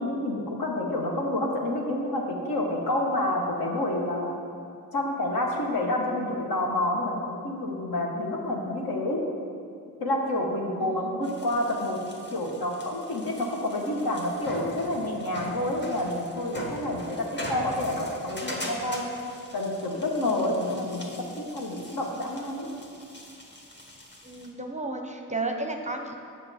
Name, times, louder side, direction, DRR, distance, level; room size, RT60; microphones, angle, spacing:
voice 1, 0.0-4.4 4.9-9.2 10.0-12.0 12.3-19.1 19.5-22.7, left 1 dB, 60° left, 0 dB, 1.3 m, -28 dB
voice 2, 10.8-11.3 24.2-26.2, right 2 dB, 15° right, 4 dB, 0.7 m, -33 dB
sound 1, 11.2-24.5, equal, 25° left, 1.5 m, -41 dB
6.9 x 5.8 x 4.2 m, 2.4 s
supercardioid pair, 40°, 41 cm